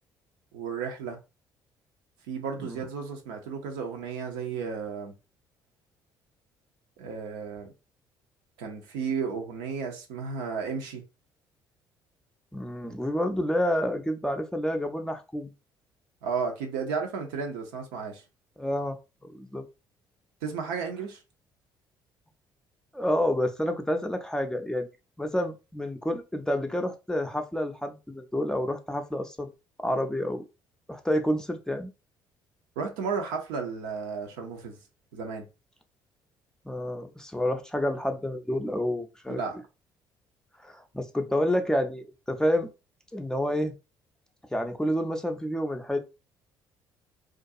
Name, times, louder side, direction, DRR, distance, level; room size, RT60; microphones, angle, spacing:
voice 1, 0.5-1.2 2.3-5.1 7.0-7.7 8.6-11.0 16.2-18.2 20.4-21.2 32.8-34.8 35.1-35.5 39.3-39.6, right 5 dB, 75° right, 0.6 m, -33 dB
voice 2, 12.5-15.5 18.6-19.0 19.3-19.6 22.9-24.9 25.2-29.5 29.8-30.4 30.9-31.9 36.7-39.4 40.6-42.7 43.1-43.8 44.5-46.0, equal, 5° left, 0.5 m, -29 dB
2.4 x 2.2 x 2.6 m
hypercardioid pair, 50°, 11 cm